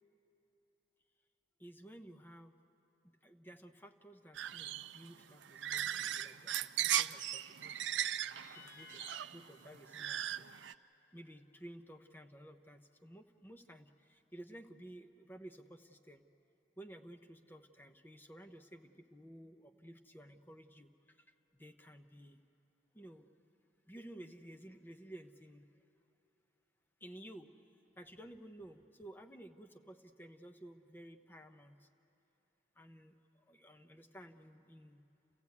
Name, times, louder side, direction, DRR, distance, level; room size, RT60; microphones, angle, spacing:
voice 1, 1.6-2.5 3.2-7.8 8.5-10.6 11.1-16.2 16.8-22.4 22.9-23.3 23.9-25.7 27.0-27.5 28.0-31.9 32.8-35.0, right 1 dB, 10° left, 6 dB, 0.8 m, -54 dB
sound 1, 4.3-10.7, right 11 dB, 85° right, 0.4 m, -38 dB
sound 2, 8.3-11.5, left 3 dB, 70° left, 4.4 m, -60 dB
29.0 x 15.5 x 8.5 m, 2.9 s
head